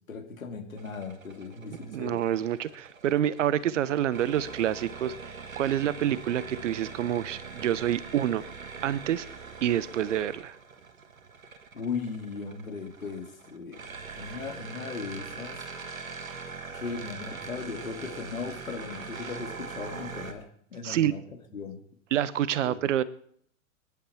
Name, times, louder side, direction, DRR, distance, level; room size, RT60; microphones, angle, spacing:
voice 1, 0.1-2.2 11.7-13.9 14.2-15.7 16.7-20.5 20.7-21.2 21.5-21.8 22.6-22.8, left 5 dB, 80° left, 5 dB, 2.4 m, -37 dB
sound 1, 0.8-20.3, right 5 dB, 80° right, 1.7 m, -42 dB
voice 2, 1.9-8.4 8.8-9.3 9.6-10.5 20.8-21.1 22.1-23.0, right 11 dB, 65° right, 19 dB, 0.9 m, -27 dB
23.5 x 11.0 x 4.3 m, 0.66 s
figure-of-eight pair, 95°, 40 cm